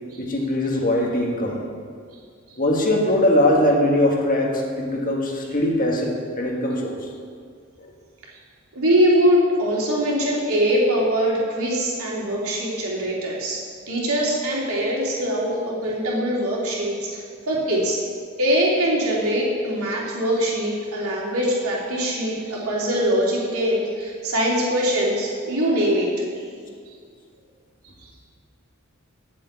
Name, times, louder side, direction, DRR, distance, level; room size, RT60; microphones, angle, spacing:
voice 1, 0.2-1.6 2.6-7.0 7.8-7.9, left 1 dB, 40° left, 0 dB, 1.6 m, -21 dB
voice 2, 8.7-18.0 18.4-26.1 26.4-26.5, equal, 75° right, -4 dB, 3.2 m, -22 dB
9.7 x 7.6 x 8.2 m, 2.1 s
head